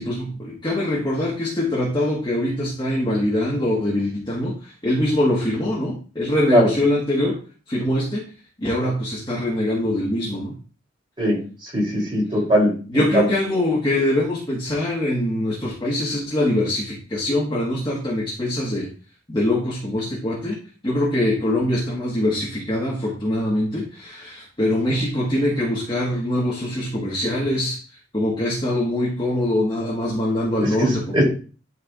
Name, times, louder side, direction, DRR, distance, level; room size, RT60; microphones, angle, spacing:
voice 1, 0.0-7.4 7.7-8.3 8.6-10.6 12.9-18.9 19.3-27.8 28.1-31.2, left 1 dB, 25° left, -5 dB, 1.5 m, -23 dB
voice 2, 11.2-12.7 13.1-13.3 30.8-31.2, equal, 30° right, -3 dB, 3.4 m, -19 dB
12.0 x 4.6 x 2.5 m, 0.38 s
head